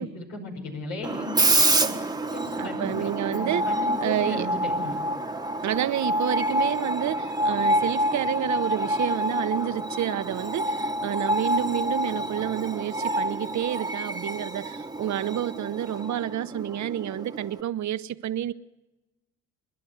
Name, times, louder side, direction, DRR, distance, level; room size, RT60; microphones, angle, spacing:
voice 1, 0.0-5.0, left 2 dB, 90° left, 5.4 m, -36 dB
Screech, 1.0-17.6, right 1 dB, 10° right, 1.2 m, -27 dB
voice 2, 2.6-3.7 4.0-4.5 5.6-18.5, right 11 dB, 50° right, 0.9 m, -29 dB
29.0 x 11.0 x 8.0 m
supercardioid pair, 80°, 36 cm